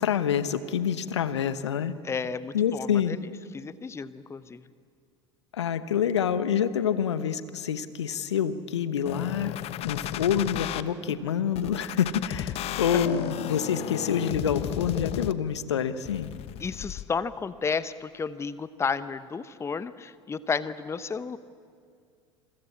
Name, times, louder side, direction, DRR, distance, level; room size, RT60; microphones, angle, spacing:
voice 1, 0.0-1.9 2.5-3.2 5.5-9.5 9.8-16.3, left 8 dB, 75° left, 13 dB, 1.1 m, -27 dB
voice 2, 2.0-3.0 3.5-4.6 16.6-21.4, left 5 dB, 20° left, 16 dB, 0.8 m, -32 dB
sound 1, 9.1-10.8 11.6-15.6 16.1-17.0, left 12 dB, 45° left, 1.1 m, -34 dB
27.5 x 22.5 x 8.6 m, 2.2 s
figure-of-eight pair, 75°, 15 cm